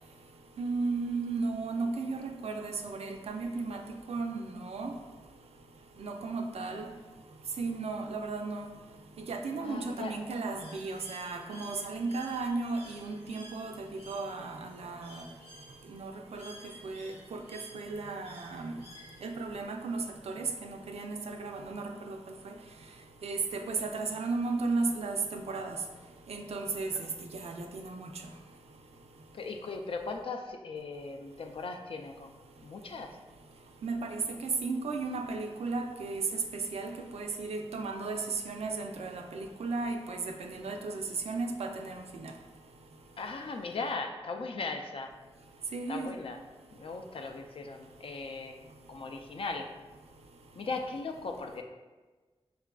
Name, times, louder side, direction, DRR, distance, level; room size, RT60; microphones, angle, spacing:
voice 1, 0.6-3.8 4.1-4.9 6.0-6.9 7.6-8.7 9.3-15.2 15.9-16.5 16.8-17.4 17.7-18.7 19.2-22.2 22.4-22.5 23.2-25.8 26.3-26.9 27.3-28.1 33.8-36.4 36.7-38.2 38.5-42.3 45.7-46.1, right 3 dB, 75° right, 3 dB, 0.4 m, -35 dB
voice 2, 6.6-7.0 9.6-10.2 29.3-32.4 32.6-33.2 43.2-45.1 45.9-46.4 46.8-48.6 48.9-49.7 50.5-51.6, left 3 dB, 60° left, 4 dB, 0.3 m, -38 dB
Bird, 10.6-19.5, right 1 dB, 75° left, 0.8 m, -53 dB
4.7 x 2.4 x 2.2 m, 1.3 s
wide cardioid pair, 85°, 11 cm